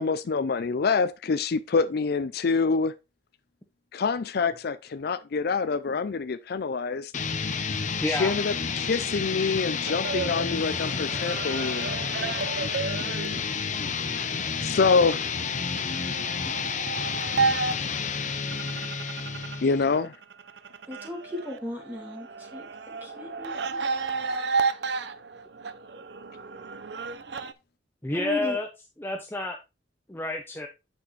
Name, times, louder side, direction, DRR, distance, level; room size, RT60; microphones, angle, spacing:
voice 1, 0.0-2.9 3.9-7.1 8.1-11.9 14.1-15.3 19.6-20.1, left 4 dB, 60° left, 0.5 m, -26 dB
sound 1, 7.1-20.0, left 5 dB, 45° left, 0.9 m, -30 dB
voice 2, 8.0-8.3 10.7-11.3 28.0-28.7 29.0-29.6 30.1-30.7, left 2 dB, 10° left, 0.8 m, -30 dB
sound 2, 9.9-19.7 20.0-27.5, right 4 dB, 70° right, 0.6 m, -33 dB
voice 3, 20.9-22.6 23.0-23.8 28.1-28.6, left 1 dB, 10° right, 2.8 m, -36 dB
8.4 x 6.1 x 3.2 m
head